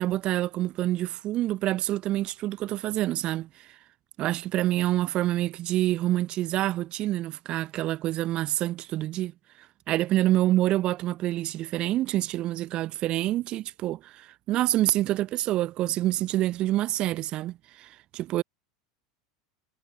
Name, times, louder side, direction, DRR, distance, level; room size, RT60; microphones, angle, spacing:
voice 1, 0.0-3.8 4.2-9.3 9.6-18.4, right 15 dB, 45° right, 0.4 m, -27 dB
hypercardioid pair, 90°, 2 cm